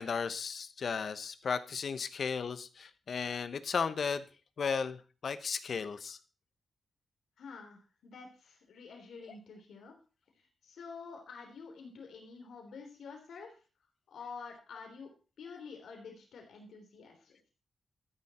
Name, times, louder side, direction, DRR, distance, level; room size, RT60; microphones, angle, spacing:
voice 1, 0.0-4.3 4.6-6.2, left 6 dB, 50° left, 13 dB, 1.0 m, -35 dB
voice 2, 7.4-9.9 10.4-13.6 14.1-15.1 15.4-17.4, left 5 dB, 85° left, 3 dB, 3.4 m, -48 dB
13.5 x 10.5 x 4.3 m, 0.35 s
wide cardioid pair, 145°, 0 cm